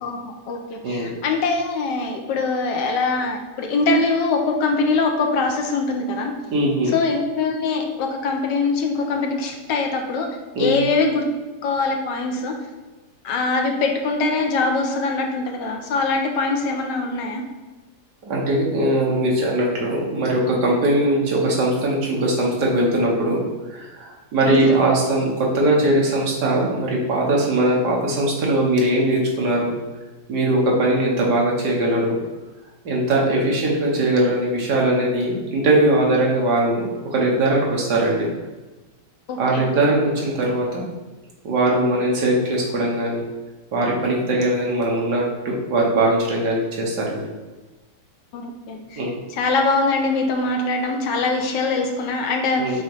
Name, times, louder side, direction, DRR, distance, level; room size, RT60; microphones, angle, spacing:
voice 1, 0.0-6.3 6.9-10.3 10.6-11.2 11.6-12.5 13.2-17.4 24.4-24.7 39.3-39.7 44.4-44.5 48.3-49.0 49.3-52.8, left 3 dB, 85° left, 2 dB, 1.4 m, -23 dB
voice 2, 6.5-6.9 10.6-10.8 18.2-23.4 23.7-29.7 30.3-32.2 32.9-36.9 37.1-38.3 39.4-40.8 41.4-43.2 43.7-47.2 49.0-49.2 52.6-52.8, right 1 dB, 70° right, -3 dB, 1.9 m, -20 dB
6.4 x 3.1 x 5.4 m, 1.2 s
omnidirectional pair, 1.8 m